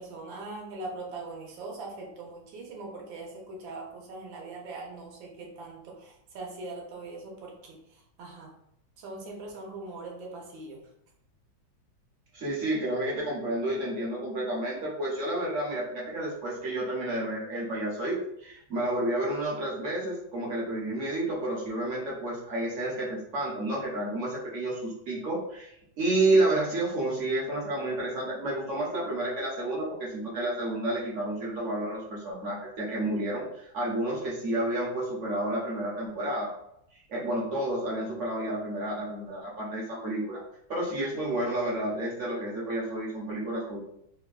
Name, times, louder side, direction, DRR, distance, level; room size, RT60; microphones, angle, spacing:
voice 1, 0.0-8.5 9.0-10.8, right 3 dB, 85° right, 0 dB, 1.4 m, -41 dB
voice 2, 12.3-36.5 37.1-40.4 40.7-43.8, right 1 dB, 55° right, -5 dB, 0.9 m, -30 dB
3.4 x 2.2 x 2.3 m, 0.73 s
omnidirectional pair, 2.1 m